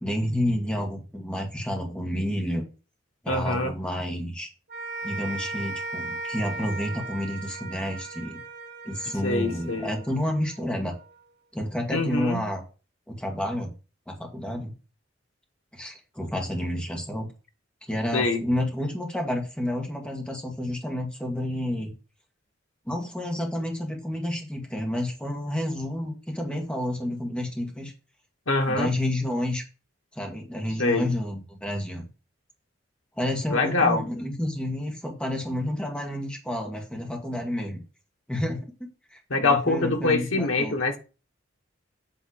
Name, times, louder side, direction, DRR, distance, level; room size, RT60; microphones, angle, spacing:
voice 1, 0.0-2.7 3.2-4.5 5.0-8.4 8.8-10.9 11.5-12.6 13.1-13.7 14.1-14.7 15.7-17.3 17.9-21.9 22.9-27.9 28.7-29.6 30.1-32.0 33.2-37.8 38.3-40.8, left 1 dB, 5° left, 1.7 m, -30 dB
voice 2, 3.3-3.7 9.2-9.9 11.9-12.5 18.1-18.4 28.5-28.9 30.8-31.1 33.5-34.1 39.3-41.0, left 3 dB, 85° left, 1.4 m, -24 dB
sound 1, 4.7-11.1, right 3 dB, 55° right, 1.7 m, -37 dB
8.5 x 3.5 x 6.3 m
head